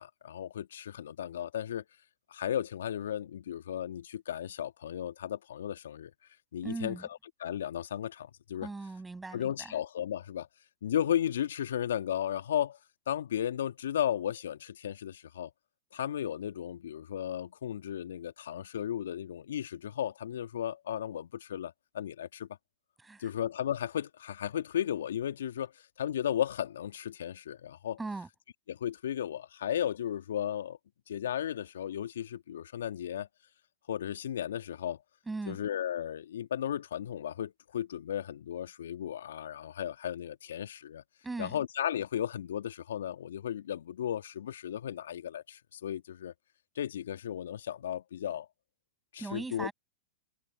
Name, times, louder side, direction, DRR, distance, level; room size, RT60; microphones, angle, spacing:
voice 1, 0.0-1.8 2.3-6.1 6.5-7.0 7.4-8.7 9.3-10.5 10.8-12.8 13.1-15.5 15.9-22.5 23.2-28.0 28.7-30.8 31.1-33.3 33.9-35.0 35.5-41.0 41.4-46.3 46.8-48.5 49.1-49.7, left 10 dB, 70° left, 1.8 m, -35 dB
voice 2, 6.6-7.1 8.6-9.8 23.0-23.3 28.0-28.3 35.3-35.6 41.2-41.6 49.2-49.7, right 3 dB, 10° right, 6.9 m, -39 dB
figure-of-eight pair, 100°, 0 cm